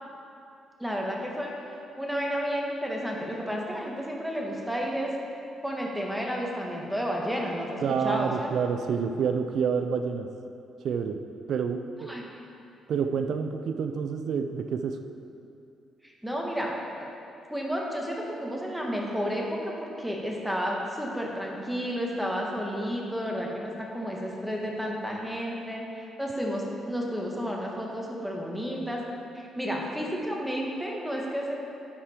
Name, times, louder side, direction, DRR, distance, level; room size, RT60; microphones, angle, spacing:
voice 1, 0.8-1.5 2.0-5.1 5.6-8.5 12.1-12.3 16.0-16.7 17.0-17.1 17.5-29.0 29.3-31.5, equal, 5° right, -2 dB, 1.5 m, -31 dB
voice 2, 7.8-10.3 10.8-12.1 12.9-15.0, right 6 dB, 65° right, 7 dB, 0.4 m, -28 dB
12.0 x 5.0 x 4.4 m, 2.6 s
cardioid pair, 90°, 0 cm